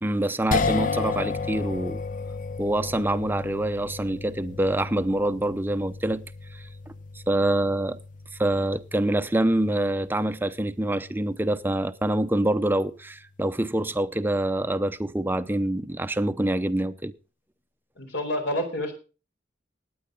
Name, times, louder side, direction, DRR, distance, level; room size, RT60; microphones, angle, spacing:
voice 1, 0.0-2.0 2.6-6.2 6.5-6.6 7.3-8.0 8.4-17.1, right 1 dB, 10° right, 0.7 m, -25 dB
sound 1, 0.5-12.8, left 4 dB, 45° left, 0.9 m, -34 dB
voice 2, 18.0-18.9, left 1 dB, 65° left, 4.6 m, -28 dB
17.5 x 9.5 x 3.9 m
head